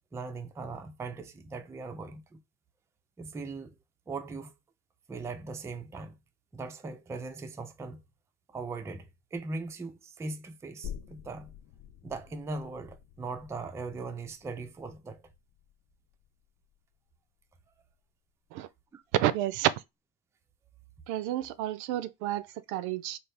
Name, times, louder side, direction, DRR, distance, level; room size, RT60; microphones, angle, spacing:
voice 1, 0.0-2.4 3.2-3.8 4.1-4.5 5.1-6.1 6.5-8.0 8.5-11.5 12.0-15.2 18.9-19.0, right 3 dB, 10° right, 0.3 m, -39 dB
sound 1, 10.8-18.1 18.5-18.6, left 9 dB, 50° left, 0.4 m, -49 dB
voice 2, 19.1-19.8 21.1-23.2, right 13 dB, 70° right, 0.5 m, -30 dB
4.2 x 2.3 x 3.3 m
supercardioid pair, 120°, 32 cm